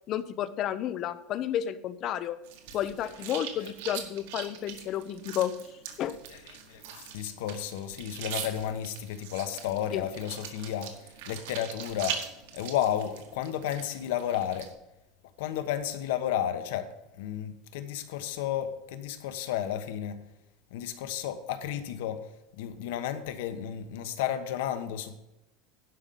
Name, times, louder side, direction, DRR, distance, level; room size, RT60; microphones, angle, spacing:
voice 1, 0.1-2.4 2.7-5.5 6.0-6.1 9.9-10.0, left 11 dB, 40° left, 14 dB, 0.7 m, -31 dB
sound 1, 2.4-14.7, right 8 dB, 75° right, 1.8 m, -42 dB
voice 2, 6.7-12.2 12.5-14.7 15.4-16.9 17.2-20.2 20.7-22.2 22.5-25.2, left 10 dB, 85° left, 9 dB, 1.2 m, -32 dB
11.5 x 5.6 x 7.0 m, 0.92 s
supercardioid pair, 150°, 0 cm